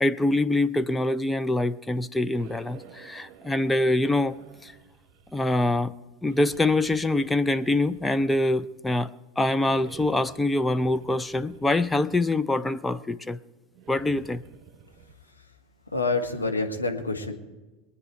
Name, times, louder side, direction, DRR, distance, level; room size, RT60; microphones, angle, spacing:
voice 1, 0.0-4.7 5.3-5.9 6.2-9.1 9.4-13.4 13.9-14.4, left 2 dB, 10° left, 11 dB, 0.5 m, -24 dB
sound 1, 2.3-5.9 6.2-8.6 9.6-12.4 13.7-15.1, right 7 dB, 45° right, 1.2 m, -51 dB
voice 2, 15.9-17.3, left 3 dB, 85° left, 3 dB, 1.4 m, -27 dB
22.0 x 9.7 x 4.7 m, 1.2 s
figure-of-eight pair, 80°, 0 cm